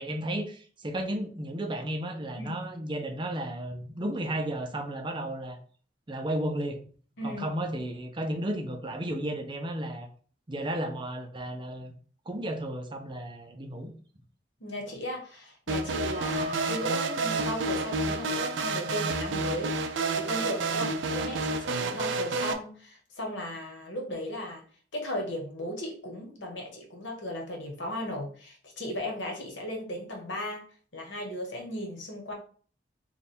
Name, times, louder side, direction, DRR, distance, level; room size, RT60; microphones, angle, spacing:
voice 1, 0.0-5.6 6.1-6.8 7.2-10.1 10.5-11.9 12.3-13.9, right 1 dB, 25° right, 4 dB, 0.5 m, -33 dB
voice 2, 14.6-24.6 24.9-30.6 30.9-32.3, left 1 dB, 85° left, 1 dB, 1.2 m, -36 dB
sound 1, 15.7-22.5, right 3 dB, 90° right, 0.4 m, -29 dB
3.3 x 2.3 x 4.2 m, 0.44 s
head